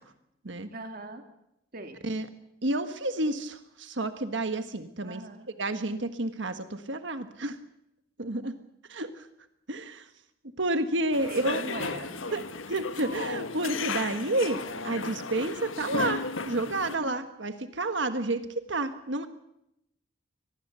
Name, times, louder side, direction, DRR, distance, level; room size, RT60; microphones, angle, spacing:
voice 1, 0.7-1.2 1.7-2.0 5.0-5.5 11.3-12.4 17.0-17.1, right 2 dB, 45° right, 5 dB, 2.4 m, -40 dB
voice 2, 2.6-5.2 5.6-7.6 8.2-8.5 8.9-9.3 9.7-10.1 10.6-11.6 12.3-12.4 12.7-18.4 18.7-19.3, right 2 dB, 65° right, 9 dB, 1.5 m, -30 dB
sound 1, 11.1-17.0, left 4 dB, 80° left, 1.5 m, -34 dB
24.0 x 20.0 x 6.9 m, 0.81 s
head